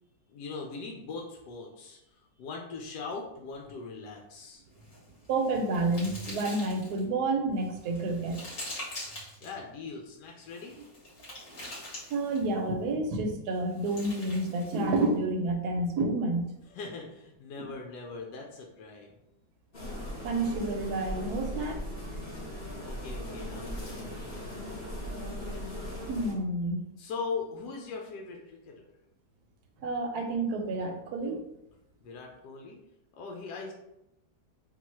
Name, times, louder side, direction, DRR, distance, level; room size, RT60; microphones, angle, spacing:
voice 1, 0.3-4.6 9.4-10.8 16.7-19.1 22.8-24.4 27.0-28.9 32.0-32.8 33.1-33.7, left 4 dB, 80° left, 1 dB, 1.2 m, -40 dB
sound 1, 4.8-7.0 7.6-9.5 10.4-12.6 13.5-15.1, left 1 dB, 55° left, 2.0 m, -44 dB
voice 2, 5.3-8.4 12.1-16.4 17.6-17.7 20.2-21.8 26.1-26.9 29.8-31.4, right 2 dB, 70° right, 4 dB, 1.1 m, -29 dB
sound 2, 19.7-26.3, equal, 35° left, 1.2 m, -38 dB
3.8 x 2.4 x 4.3 m, 0.85 s
omnidirectional pair, 1.8 m